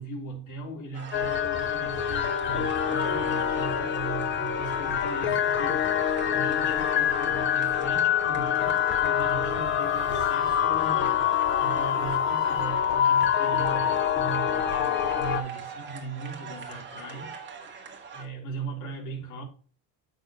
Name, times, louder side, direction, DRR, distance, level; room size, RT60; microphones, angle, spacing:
voice 1, 0.0-17.3 18.1-19.4, right 3 dB, 45° left, 3.5 m, -39 dB
sound 1, 0.9-18.2, right 5 dB, 25° right, 1.6 m, -42 dB
sound 2, 1.1-15.4, left 9 dB, 30° left, 0.5 m, -26 dB
Wind instrument woodwind instrument, 8.6-12.8, left 7 dB, 75° left, 1.5 m, -36 dB
8.8 x 6.3 x 2.9 m
cardioid pair, 160°, 44 cm